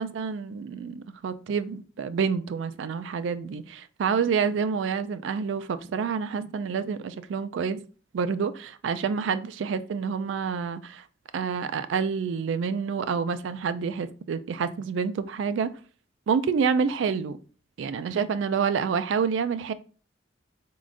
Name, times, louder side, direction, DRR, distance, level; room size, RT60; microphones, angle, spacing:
voice 1, 0.0-7.8 8.1-11.1 11.3-15.7 16.3-17.4 17.8-19.7, right 6 dB, 90° right, 0.3 m, -28 dB
4.2 x 3.7 x 2.4 m
head